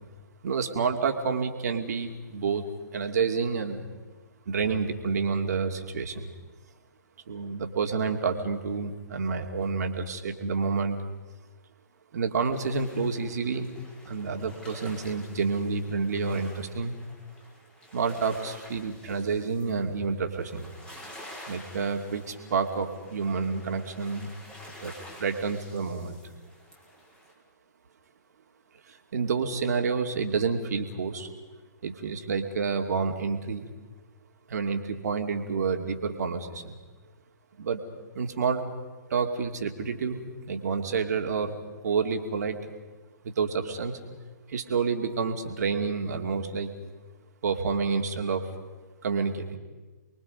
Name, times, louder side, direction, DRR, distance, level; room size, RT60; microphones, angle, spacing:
voice 1, 0.4-2.7 2.9-3.9 4.5-6.3 7.3-11.0 12.1-13.7 14.1-16.9 17.9-20.7 21.5-24.3 24.8-24.9 25.2-26.2 28.9-31.3 31.8-33.7 34.5-36.8 37.6-37.8 38.1-38.6 39.1-41.6 41.8-42.7 43.2-44.0 44.5-46.7 47.4-48.5 49.0-49.6, right 5 dB, 60° right, 4 dB, 2.6 m, -29 dB
sound 1, 12.5-27.3, left 1 dB, 10° left, 5.3 m, -49 dB
29.5 x 22.5 x 5.3 m, 1.3 s
figure-of-eight pair, 130°, 10 cm